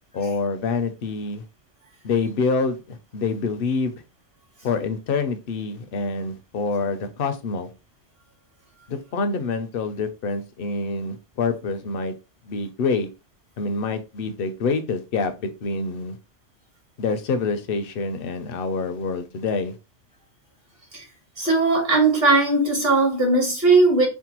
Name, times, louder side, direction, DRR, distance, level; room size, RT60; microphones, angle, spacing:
voice 1, 0.1-1.4 2.0-3.9 4.6-7.7 8.9-12.1 12.4-13.1 13.6-16.2 17.0-19.8, left 4 dB, 60° left, 0.7 m, -26 dB
voice 2, 21.4-24.1, right 3 dB, 55° right, 1.5 m, -18 dB
4.5 x 2.1 x 2.9 m
omnidirectional pair, 1.2 m